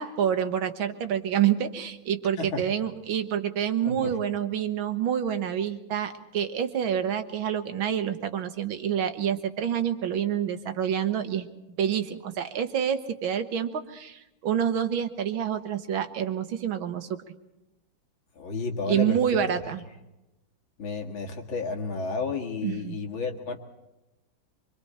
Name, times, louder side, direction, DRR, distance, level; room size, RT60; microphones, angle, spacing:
voice 1, 0.0-11.5 11.8-17.1 18.9-19.8 22.6-23.0, right 9 dB, 85° right, 8 dB, 2.0 m, -27 dB
voice 2, 3.8-4.1 18.4-19.2 20.8-23.6, left 4 dB, 80° left, 2 dB, 2.8 m, -32 dB
25.0 x 24.5 x 4.3 m, 0.96 s
omnidirectional pair, 2.1 m